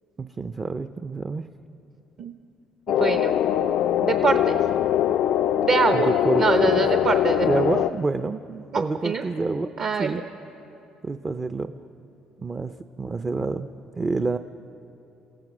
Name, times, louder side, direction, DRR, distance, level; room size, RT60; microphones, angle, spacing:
voice 1, 0.2-1.5 5.9-6.4 7.4-9.7 10.0-10.2 11.0-11.7 12.4-13.7 13.9-14.4, right 3 dB, 20° right, 9 dB, 0.5 m, -28 dB
sound 1, 2.9-7.9, left 11 dB, 65° left, 0.4 m, -22 dB
voice 2, 2.9-3.4 4.0-4.6 5.6-6.1 6.4-7.5 8.7-9.2 9.8-10.2, right 5 dB, 45° right, 6 dB, 0.8 m, -24 dB
28.5 x 16.0 x 6.1 m, 2.8 s
cardioid pair, 145°, 2 cm